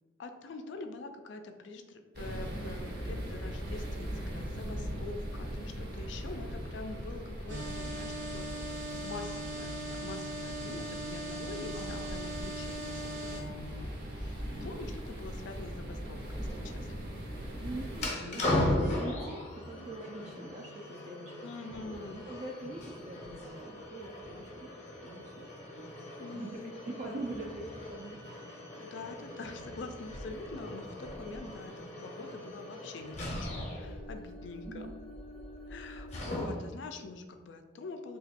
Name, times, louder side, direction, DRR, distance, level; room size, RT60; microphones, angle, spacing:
voice 1, 0.2-8.5 9.0-17.1 18.2-18.6 21.4-22.2 26.2-26.7 27.0-27.2 28.8-34.9 35.7-38.2, left 3 dB, 75° left, 6 dB, 0.4 m, -45 dB
sound 1, 2.1-18.1, equal, 55° right, 0.7 m, -40 dB
sound 2, 7.5-13.4, right 1 dB, 90° right, 1.0 m, -39 dB
voice 2, 7.6-8.0 11.7-12.1 17.5-28.2 34.7-34.9, right 2 dB, 35° right, -1 dB, 0.3 m, -44 dB
sound 3, 17.9-36.8, left 1 dB, 40° left, 0.7 m, -38 dB
2.9 x 2.3 x 4.2 m, 1.4 s
head